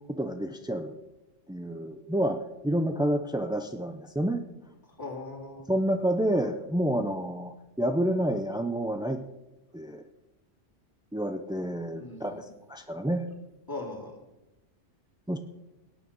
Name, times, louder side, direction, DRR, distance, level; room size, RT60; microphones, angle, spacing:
voice 1, 0.2-0.9 1.5-4.4 5.7-9.2 9.7-10.0 11.1-13.3 15.3-15.4, right 1 dB, 5° right, 6 dB, 0.3 m, -29 dB
voice 2, 5.0-5.7 11.9-12.4 13.7-14.2, left 2 dB, 15° left, -1 dB, 2.7 m, -39 dB
18.0 x 9.1 x 5.4 m, 1.0 s
omnidirectional pair, 1.3 m